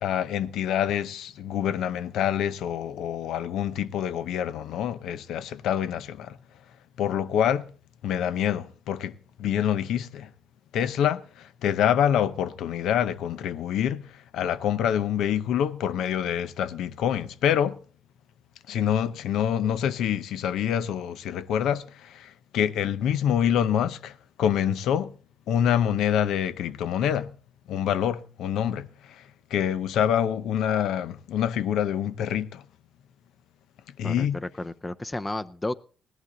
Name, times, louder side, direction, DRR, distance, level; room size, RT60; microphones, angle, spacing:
voice 1, 0.0-6.4 7.0-7.7 8.0-10.3 10.7-17.8 18.7-25.1 25.5-27.3 27.7-32.6 34.0-34.4, left 9 dB, 80° left, 0.7 m, -26 dB
voice 2, 34.0-35.7, left 2 dB, 15° left, 0.6 m, -32 dB
17.5 x 11.0 x 3.9 m
cardioid pair, 90°, 0 cm